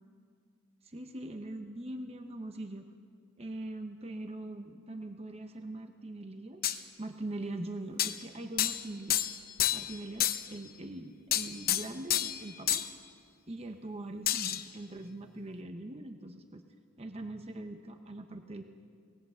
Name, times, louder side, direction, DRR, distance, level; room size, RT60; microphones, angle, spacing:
voice 1, 0.8-2.9 3.4-9.2 9.7-12.8 13.5-16.6 17.0-18.6, right 2 dB, 30° right, 6 dB, 0.9 m, -42 dB
sound 1, 6.6-6.8 8.0-8.2 8.6-8.9 9.1-10.0 10.2-10.5 11.3-12.4 12.7-12.9 14.3-14.6, left 11 dB, 50° left, 0.8 m, -29 dB
19.5 x 17.0 x 8.0 m, 2.1 s
head